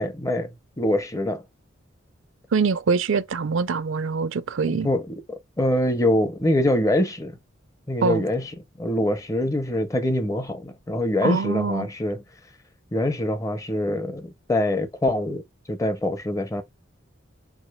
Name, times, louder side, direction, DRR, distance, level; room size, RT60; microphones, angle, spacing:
voice 1, 0.0-1.4 4.7-7.4 7.9-8.5 8.8-12.2 12.9-15.4 15.7-16.6, left 1 dB, 15° left, 0.5 m, -24 dB
voice 2, 2.5-4.9 8.0-8.2 11.2-11.9, right 5 dB, 75° right, 0.4 m, -24 dB
4.8 x 4.4 x 2.2 m
head